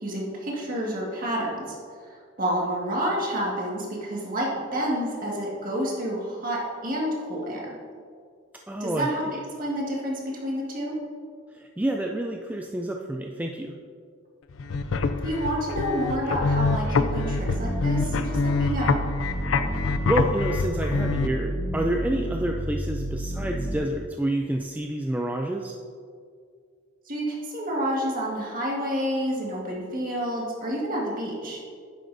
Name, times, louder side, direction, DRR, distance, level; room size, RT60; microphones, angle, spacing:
voice 1, 0.0-1.8 2.1-7.7 8.8-9.3 9.6-11.0 15.2-19.0 27.1-31.6, equal, 45° right, -3 dB, 1.8 m, -29 dB
voice 2, 8.7-9.4 11.5-13.7 19.8-25.7, right 1 dB, 10° right, 1 dB, 0.3 m, -28 dB
sound 1, 14.5-21.3, left 4 dB, 80° left, 0.5 m, -26 dB
sound 2, 16.3-23.8, equal, 35° left, 1.9 m, -31 dB
9.9 x 7.8 x 2.6 m, 2.2 s
head